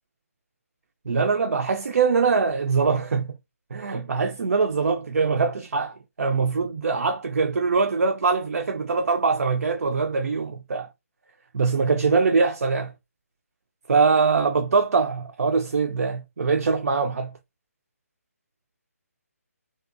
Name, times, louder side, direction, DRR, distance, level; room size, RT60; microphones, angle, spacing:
voice 1, 1.1-3.4 3.7-10.9 11.5-12.9 13.9-17.3, right 4 dB, 70° right, 0.4 m, -23 dB
2.6 x 2.3 x 2.4 m
figure-of-eight pair, 150°, 8 cm